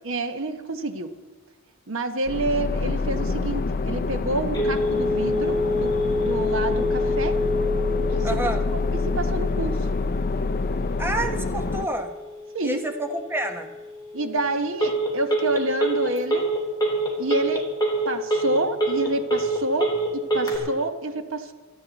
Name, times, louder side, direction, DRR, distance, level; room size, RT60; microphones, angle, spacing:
voice 1, 0.0-1.1 1.9-7.4 8.1-9.9 12.5-12.8 14.1-16.5 17.2-17.6 18.1-21.5, right 2 dB, 60° right, 8 dB, 1.1 m, -28 dB
sound 1, 2.3-11.9, left 3 dB, 40° left, 0.6 m, -27 dB
Telephone, 4.5-20.6, equal, 20° left, 3.3 m, -27 dB
voice 2, 8.2-8.6 11.0-12.1 12.6-13.7, right 1 dB, 10° right, 5 dB, 1.1 m, -28 dB
26.5 x 9.9 x 4.1 m, 1.2 s
head